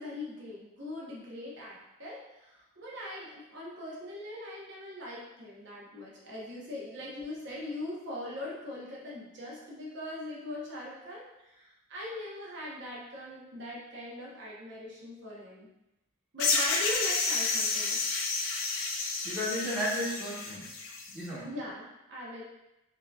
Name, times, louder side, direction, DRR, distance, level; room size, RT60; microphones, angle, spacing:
voice 1, 0.0-15.7 16.3-18.0 21.4-22.4, left 1 dB, 55° right, -5 dB, 0.8 m, -41 dB
sound 1, 16.4-21.1, left 3 dB, 75° left, 0.6 m, -30 dB
voice 2, 19.2-20.7 21.1-21.5, equal, 5° right, -9 dB, 1.1 m, -33 dB
5.6 x 2.6 x 2.3 m, 0.91 s
head